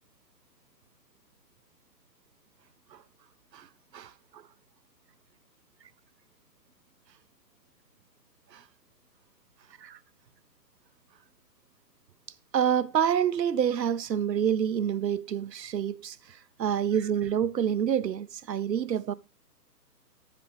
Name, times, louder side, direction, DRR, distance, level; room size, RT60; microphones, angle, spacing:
voice 1, 3.9-4.4 8.5-8.6 9.8-10.0 12.5-19.1, right 9 dB, 80° right, 0.7 m, -28 dB
10.5 x 8.5 x 3.4 m
hypercardioid pair, 155°, 49 cm